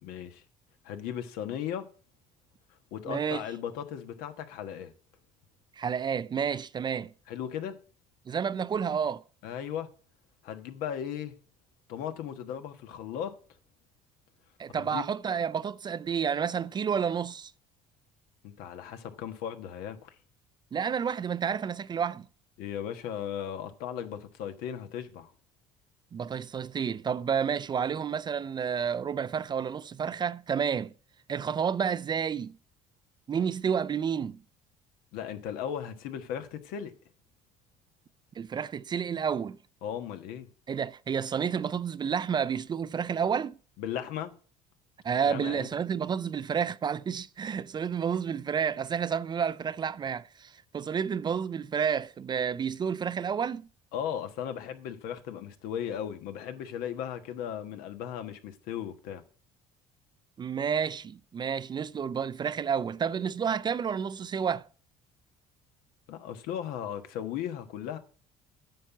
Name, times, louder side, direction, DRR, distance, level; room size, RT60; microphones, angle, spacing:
voice 1, 0.0-0.4 0.8-1.9 2.9-4.9 7.3-7.8 9.4-9.9 10.4-11.3 11.9-13.3 14.8-15.0 18.4-20.2 22.6-25.3 35.1-36.9 39.8-40.5 43.8-44.3 45.3-45.7 53.9-59.2 66.1-68.0, left 9 dB, 80° left, 1.3 m, -36 dB
voice 2, 3.1-3.4 5.8-7.1 8.3-9.2 14.6-17.5 20.7-22.3 26.1-30.9 31.3-32.6 33.3-34.4 38.4-39.6 40.7-43.6 45.0-53.7 60.4-64.7, right 7 dB, 30° right, 0.4 m, -30 dB
9.3 x 5.9 x 6.0 m
supercardioid pair, 100°, 15 cm